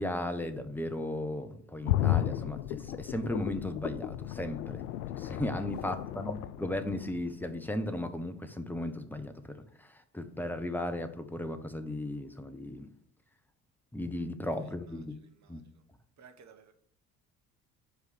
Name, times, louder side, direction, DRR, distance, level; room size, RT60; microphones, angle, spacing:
voice 1, 0.0-4.8 5.2-12.9 13.9-15.2 15.5-15.6, left 1 dB, 5° left, 1.1 m, -36 dB
sound 1, 1.9-7.7 8.1-8.2, left 13 dB, 80° left, 0.5 m, -34 dB
voice 2, 14.6-15.8 16.2-16.7, right 6 dB, 35° right, 1.5 m, -59 dB
8.2 x 5.0 x 6.5 m
figure-of-eight pair, 50°, 46 cm